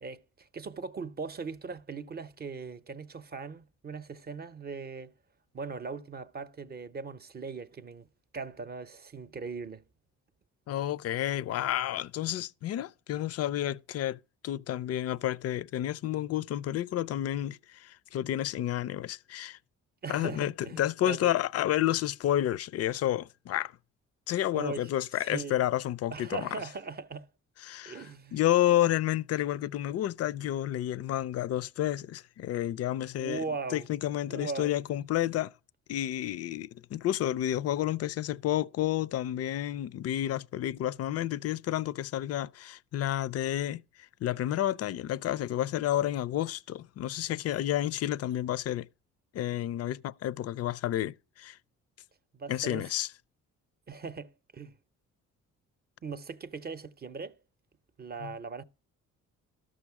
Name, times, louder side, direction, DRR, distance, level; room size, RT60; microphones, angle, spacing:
voice 1, 0.0-5.1 5.5-8.1 8.3-9.8 20.0-21.3 24.5-24.9 25.2-25.6 26.1-27.3 27.9-28.4 33.2-33.9 34.3-34.7 52.3-52.9 53.9-54.7 56.0-57.4 58.0-58.6, right 4 dB, 30° right, 0.7 m, -39 dB
voice 2, 10.7-19.6 20.1-23.7 24.3-26.5 27.6-28.0 28.3-33.4 33.7-35.5 35.9-43.8 44.2-48.9 49.3-51.6 52.5-53.1 58.2-58.3, left 12 dB, 55° left, 0.4 m, -30 dB
12.5 x 6.3 x 4.7 m
cardioid pair, 90°, 30 cm